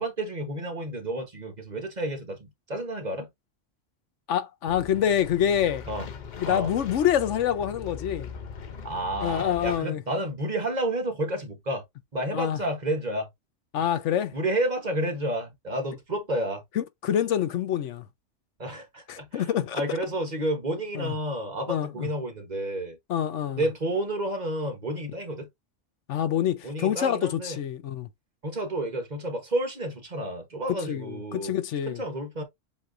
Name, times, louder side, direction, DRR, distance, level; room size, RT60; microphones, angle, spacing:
voice 1, 0.0-3.3 5.9-6.0 6.4-6.7 8.8-11.8 12.1-13.3 14.3-16.6 18.6-23.0 23.6-25.5 26.6-27.6 28.4-31.6 31.9-32.4, right 1 dB, 35° right, 1.1 m, -30 dB
voice 2, 4.3-5.9 6.4-8.3 9.2-10.0 12.3-12.6 13.7-14.3 16.8-18.0 19.1-19.8 21.0-21.1 21.7-22.1 23.1-23.6 26.1-28.1 30.9-32.0, left 10 dB, 75° left, 1.0 m, -26 dB
sound 1, 4.7-9.8, left 6 dB, 45° left, 0.7 m, -40 dB
7.2 x 2.7 x 2.5 m
omnidirectional pair, 1.3 m